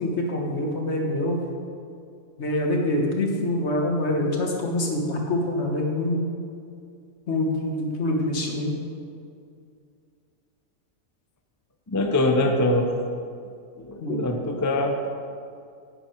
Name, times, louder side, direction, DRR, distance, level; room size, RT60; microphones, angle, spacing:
voice 1, 0.0-1.4 2.4-6.3 7.3-8.7 14.0-14.3, left 1 dB, 55° left, 1 dB, 1.6 m, -25 dB
voice 2, 11.9-13.0 13.8-15.1, left 1 dB, 20° left, 4 dB, 0.5 m, -23 dB
9.9 x 9.8 x 4.5 m, 2.4 s
omnidirectional pair, 1.4 m